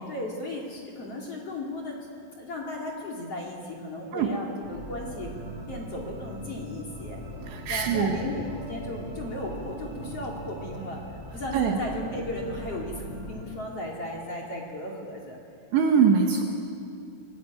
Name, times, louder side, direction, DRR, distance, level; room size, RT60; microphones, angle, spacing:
voice 1, 0.1-2.0 2.4-5.3 5.7-7.2 7.7-11.0 11.3-15.4, left 1 dB, 35° left, -1 dB, 2.9 m, -35 dB
sound 1, 4.6-13.4, right 1 dB, 15° right, 5.7 m, -40 dB
voice 2, 7.4-8.2 11.5-11.8 15.7-16.4, right 6 dB, 70° right, 3 dB, 3.5 m, -23 dB
26.5 x 18.0 x 9.1 m, 2.4 s
omnidirectional pair, 5.7 m